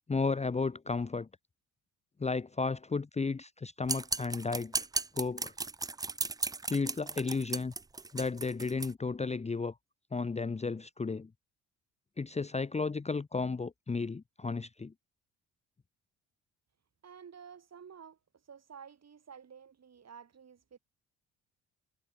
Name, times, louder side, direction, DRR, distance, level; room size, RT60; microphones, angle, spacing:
voice 1, 0.1-1.3 2.2-4.9 5.1-5.5 6.7-7.7 8.1-9.8 10.1-11.3 12.2-14.9, left 4 dB, 20° left, 0.8 m, -33 dB
sound 1, 3.9-8.9, right 3 dB, 10° right, 0.4 m, -35 dB
voice 2, 17.0-18.2 18.5-20.8, right 7 dB, 45° right, 5.3 m, -51 dB
supercardioid pair, 60°, 35 cm